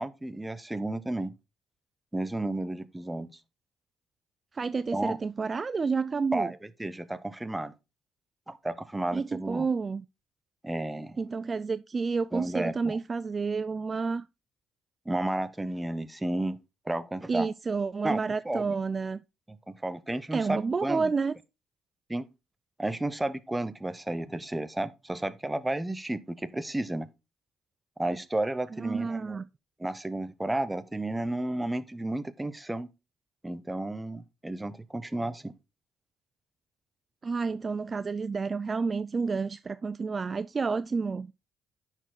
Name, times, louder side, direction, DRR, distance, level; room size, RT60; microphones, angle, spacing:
voice 1, 0.0-1.3 2.1-3.3 4.9-5.2 6.3-7.7 8.5-9.7 10.6-11.2 12.3-13.0 15.1-16.6 16.9-17.5 18.0-18.2 18.4-18.8 19.5-21.1 22.1-22.3 22.8-27.1 28.0-29.4 29.8-32.9 33.4-35.5, right 1 dB, 15° right, 0.8 m, -32 dB
voice 2, 4.5-6.5 9.1-10.0 11.2-14.3 17.3-19.2 20.3-21.3 28.8-29.4 37.2-41.3, right 4 dB, 35° right, 0.3 m, -30 dB
10.0 x 4.5 x 3.9 m
hypercardioid pair, 50°, 0 cm